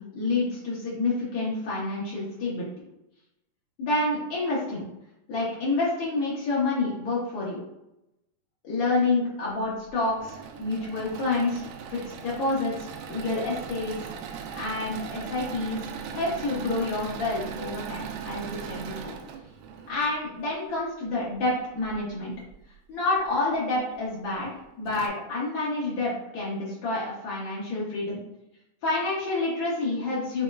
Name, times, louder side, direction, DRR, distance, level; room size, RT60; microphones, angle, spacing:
voice 1, 0.0-2.7 3.8-4.8 5.3-7.6 8.6-13.9 14.6-15.8 16.1-19.1 19.9-22.3 22.9-28.2 28.8-30.4, left 2 dB, 85° left, -7 dB, 1.2 m, -28 dB
Engine / Mechanisms, 9.9-20.2 21.8-22.5 23.1-23.2 23.5-23.6 24.5-24.6 24.9-25.1, right 7 dB, 80° right, 2.1 m, -39 dB
6.8 x 3.0 x 2.4 m, 0.89 s
omnidirectional pair, 4.1 m